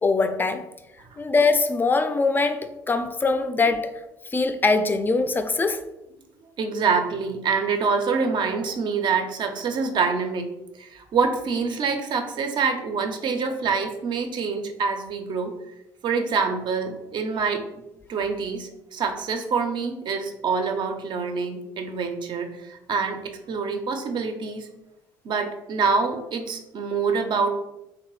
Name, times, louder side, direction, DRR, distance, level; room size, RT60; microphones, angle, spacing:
voice 1, 0.0-0.6 1.2-3.9 4.3-5.8, left 3 dB, 20° left, 9 dB, 0.3 m, -22 dB
voice 2, 6.6-15.5 16.0-17.8 18.1-24.7 25.2-27.5, right 5 dB, 50° right, 5 dB, 0.5 m, -26 dB
3.0 x 2.0 x 3.0 m, 0.91 s
hypercardioid pair, 60°, 10 cm